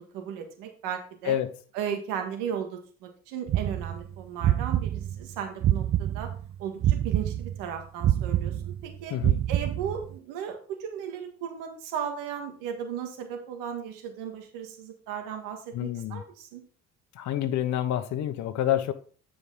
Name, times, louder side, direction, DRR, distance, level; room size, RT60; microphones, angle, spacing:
voice 1, 0.0-1.4 1.7-6.3 6.6-9.1 9.5-16.6, right 8 dB, 90° right, 1.7 m, -36 dB
sound 1, 3.5-6.4 6.8-10.1, right 12 dB, 45° right, 0.5 m, -26 dB
voice 2, 9.1-9.4 15.7-16.2 17.1-18.9, left 11 dB, 65° left, 1.1 m, -28 dB
9.6 x 5.0 x 3.8 m
supercardioid pair, 90°, 31 cm